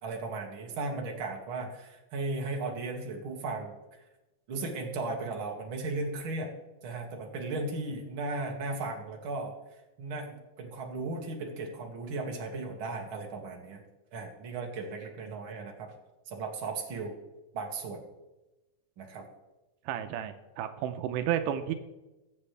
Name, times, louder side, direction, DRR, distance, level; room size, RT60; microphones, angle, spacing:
voice 1, 0.0-3.8 4.5-6.5 6.8-9.5 10.0-13.8 14.1-15.9 16.3-17.2 17.5-18.0 19.0-19.2, right 3 dB, 45° right, 1 dB, 2.3 m, -36 dB
voice 2, 19.9-21.7, right 10 dB, 85° right, 8 dB, 2.3 m, -32 dB
22.0 x 7.5 x 3.3 m, 1.0 s
omnidirectional pair, 3.7 m